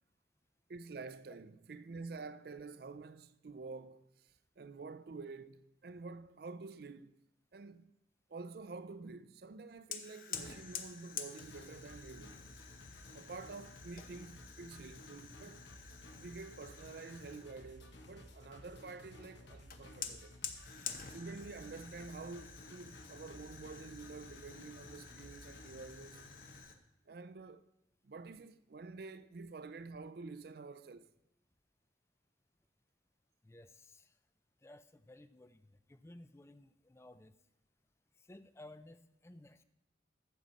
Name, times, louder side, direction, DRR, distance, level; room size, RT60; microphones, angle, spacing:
voice 1, 0.7-7.2 7.5-7.9 8.3-12.4 13.1-15.6 16.1-20.3 21.1-26.3 27.1-27.7 28.0-31.1, right 4 dB, 55° right, 0.4 m, -49 dB
Fire, 9.9-17.6 19.7-26.8, left 7 dB, 45° left, 0.8 m, -49 dB
sound 1, 11.4-26.6, left 1 dB, 70° left, 1.2 m, -55 dB
voice 2, 33.4-34.2 34.6-37.3 38.2-39.6, left 1 dB, 15° left, 0.4 m, -56 dB
12.5 x 7.5 x 4.1 m
head